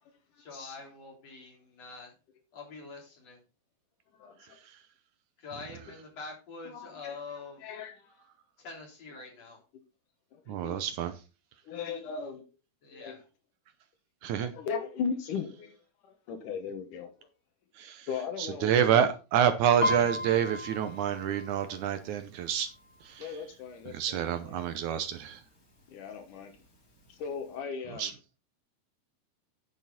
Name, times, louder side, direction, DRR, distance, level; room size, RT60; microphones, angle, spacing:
voice 1, 0.4-2.1 2.5-3.4 5.4-7.7 8.6-9.6 12.8-13.2, left 4 dB, 50° left, 4.4 m, -45 dB
voice 2, 4.1-4.6 6.6-8.2 10.3-10.8 11.6-12.4 12.9-13.2 14.4-15.8 16.0-17.3 18.1-19.0 23.2-24.6 25.9-26.6 27.1-28.1, left 6 dB, 75° left, 2.7 m, -38 dB
voice 3, 10.5-11.1 14.2-14.5 17.8-18.1 18.4-22.7 23.0-23.3 23.9-25.4 28.0-28.1, right 9 dB, 75° right, 2.0 m, -28 dB
Piano, 19.8-23.5 23.8-24.2 24.6-25.2 25.8-25.9 26.1-27.1 27.5-27.6, left 1 dB, 25° left, 2.6 m, -35 dB
9.8 x 7.6 x 4.0 m
omnidirectional pair, 3.9 m